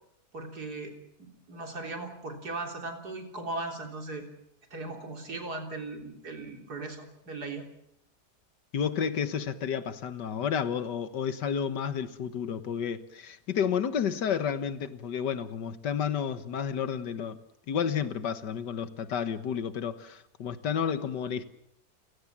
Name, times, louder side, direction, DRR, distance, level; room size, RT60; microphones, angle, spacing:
voice 1, 0.3-4.3 4.7-7.7, right 2 dB, 65° right, 3 dB, 4.1 m, -38 dB
voice 2, 8.7-17.4 17.7-21.4, left 7 dB, 85° left, 11 dB, 1.9 m, -31 dB
30.0 x 17.5 x 7.4 m, 0.77 s
omnidirectional pair, 1.8 m